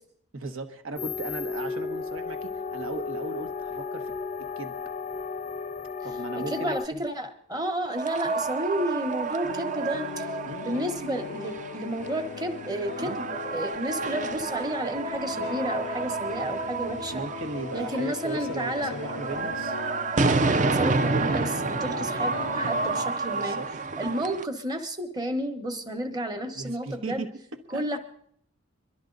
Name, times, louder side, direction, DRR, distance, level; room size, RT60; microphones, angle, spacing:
voice 1, 0.3-4.1 4.4-4.8 6.0-7.0 8.2-8.3 10.4-10.6 13.0-13.2 17.1-19.8 23.3-23.7 26.5-27.9, right 3 dB, 80° right, 8 dB, 1.3 m, -37 dB
sound 1, 1.0-6.9, left 4 dB, 35° left, 0.5 m, -34 dB
voice 2, 6.4-10.2 10.6-17.2 17.7-19.0 19.4-19.5 20.5-23.6 24.0-27.2 27.7-28.0, right 1 dB, 20° right, 7 dB, 1.1 m, -31 dB
sound 2, 7.9-24.4, right 3 dB, 35° right, 0.5 m, -30 dB
sound 3, 9.4-23.1, left 6 dB, 90° left, 0.5 m, -39 dB
22.5 x 12.5 x 3.9 m, 0.65 s
head